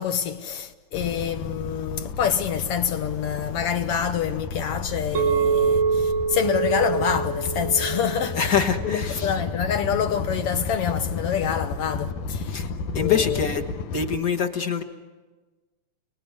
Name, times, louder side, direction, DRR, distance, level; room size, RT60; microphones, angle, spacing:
voice 1, 0.0-12.6 12.9-13.4, left 8 dB, 60° left, 1.7 m, -27 dB
sound 1, 0.9-14.2, left 4 dB, 85° left, 2.6 m, -32 dB
Chink clink, 5.1-9.4, right 6 dB, 85° right, 1.0 m, -25 dB
voice 2, 8.3-9.3 12.5-13.7 13.9-14.8, left 6 dB, 45° left, 1.2 m, -25 dB
30.0 x 20.0 x 9.6 m
omnidirectional pair, 3.5 m